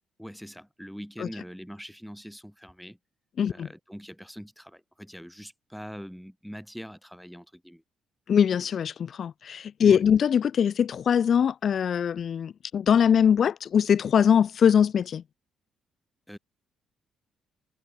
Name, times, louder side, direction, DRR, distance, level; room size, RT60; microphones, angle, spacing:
voice 1, 0.2-3.0 3.5-7.8 9.8-10.0 16.3-16.4, equal, ahead, 1.8 m, -42 dB
voice 2, 3.4-3.7 8.3-15.2, left 8 dB, 55° left, 0.7 m, -22 dB
cardioid pair, 90°, 0 cm